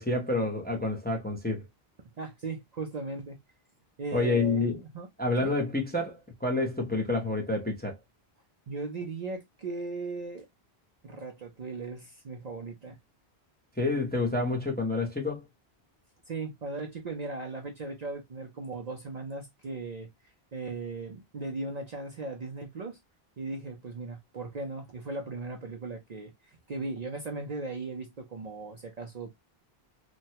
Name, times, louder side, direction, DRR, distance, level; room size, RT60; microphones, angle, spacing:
voice 1, 0.0-1.6 4.1-4.8 5.2-8.0 13.8-15.4, left 2 dB, 10° left, 0.6 m, -28 dB
voice 2, 2.2-3.4 4.0-5.1 5.4-5.5 8.7-10.5 11.0-13.0 16.3-23.0 23.4-29.3, right 3 dB, 50° right, 0.6 m, -38 dB
3.1 x 2.2 x 2.7 m
omnidirectional pair, 1.1 m